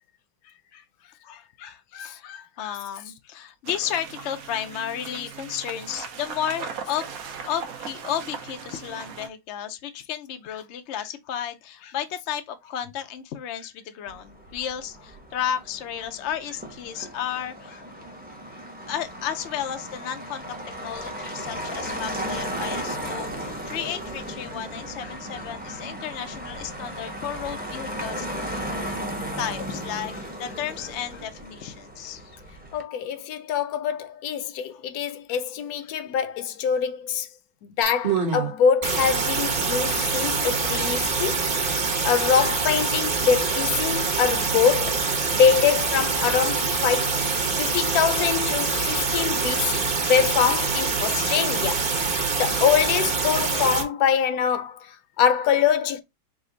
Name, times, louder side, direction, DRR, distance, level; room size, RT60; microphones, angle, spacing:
voice 1, 0.4-17.9 18.5-28.3 28.8-29.1 29.4-32.4 34.7-34.8 35.3-35.4 35.8-35.9 41.1-41.3 41.6-41.7 49.5-49.9, left 9 dB, 90° left, 0.6 m, -33 dB
sound 1, 3.6-9.3, right 6 dB, 65° right, 1.0 m, -38 dB
Motor vehicle (road), 14.1-32.8, equal, 10° right, 0.4 m, -35 dB
voice 2, 32.7-37.3 37.8-41.4 42.0-47.2 47.6-51.9 52.4-56.0, left 7 dB, 70° left, 0.9 m, -24 dB
sound 2, 37.8-38.5 38.8-53.8, right 4 dB, 40° right, 0.9 m, -25 dB
5.0 x 2.1 x 3.8 m
omnidirectional pair, 1.9 m